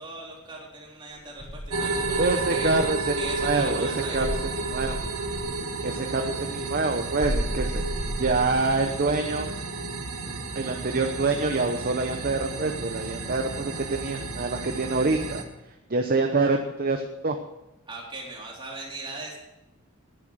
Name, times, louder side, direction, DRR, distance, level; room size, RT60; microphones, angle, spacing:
voice 1, 0.0-2.8 3.1-4.3 17.9-19.4, right 2 dB, 25° right, -3 dB, 3.6 m, -39 dB
Insect, 1.4-3.6 4.1-5.5 7.2-8.9, equal, 40° left, 5.6 m, -33 dB
sound 1, 1.7-15.4, right 3 dB, 85° right, 1.7 m, -32 dB
voice 2, 2.2-3.1 3.4-3.9 4.1-4.3 4.7-5.0 5.8-7.8 8.2-9.5 10.5-15.4 15.9-17.4, right 3 dB, 40° right, 4 dB, 0.8 m, -26 dB
11.0 x 10.5 x 6.3 m, 0.94 s
head